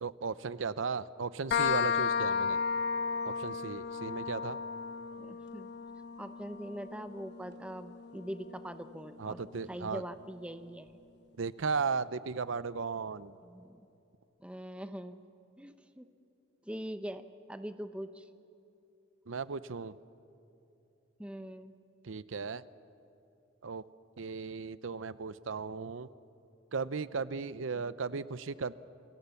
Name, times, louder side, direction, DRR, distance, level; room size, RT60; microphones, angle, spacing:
voice 1, 0.0-2.6 3.2-4.6 9.2-10.0 11.4-13.4 19.3-20.0 22.0-22.6 23.6-23.8 24.2-26.1 26.7-28.7, right 5 dB, 80° right, 16 dB, 0.6 m, -36 dB
sound 1, 1.5-8.9, left 6 dB, 60° left, 1.1 m, -34 dB
voice 2, 5.2-5.7 6.2-9.4 9.7-10.9 13.4-13.8 14.4-15.2 15.6-16.1 16.7-17.2 17.5-18.2 21.2-21.7, equal, 5° right, 10 dB, 0.8 m, -42 dB
29.0 x 23.0 x 7.1 m, 2.8 s
head